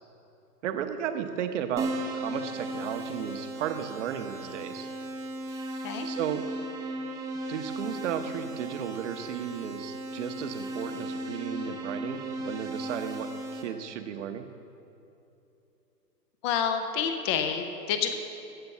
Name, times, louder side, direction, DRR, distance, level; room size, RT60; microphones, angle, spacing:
voice 1, 0.6-4.9 6.0-6.5 7.4-14.5, right 9 dB, 45° right, 7 dB, 1.0 m, -34 dB
Keyboard (musical), 1.8-13.6, right 1 dB, 5° right, 0.8 m, -36 dB
voice 2, 16.4-18.1, left 7 dB, 20° left, 7 dB, 0.5 m, -28 dB
14.5 x 5.2 x 8.0 m, 2.8 s
hypercardioid pair, 130°, 48 cm